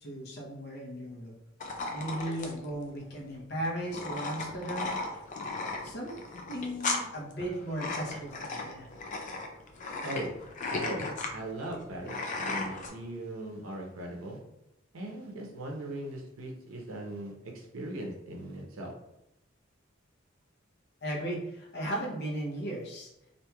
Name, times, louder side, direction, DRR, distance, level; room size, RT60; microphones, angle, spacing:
voice 1, 0.0-1.3 1.9-4.9 5.8-6.2 6.5-8.9 21.0-23.1, right 1 dB, 55° left, -3 dB, 0.8 m, -36 dB
sound 1, 1.6-12.9, left 3 dB, 40° left, 0.4 m, -36 dB
voice 2, 10.7-14.4 14.9-18.9, right 1 dB, 85° right, 0 dB, 0.6 m, -39 dB
2.9 x 2.5 x 2.2 m, 0.88 s
head